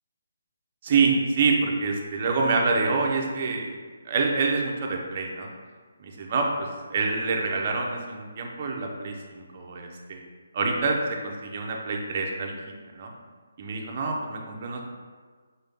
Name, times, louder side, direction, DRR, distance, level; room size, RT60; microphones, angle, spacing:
voice 1, 0.8-3.7 4.0-5.5 6.0-6.5 6.9-10.2 10.5-12.6 12.9-13.1 13.6-14.8, right 4 dB, 35° right, 1 dB, 0.5 m, -26 dB
4.0 x 2.6 x 3.5 m, 1.5 s
hypercardioid pair, 165°, 0 cm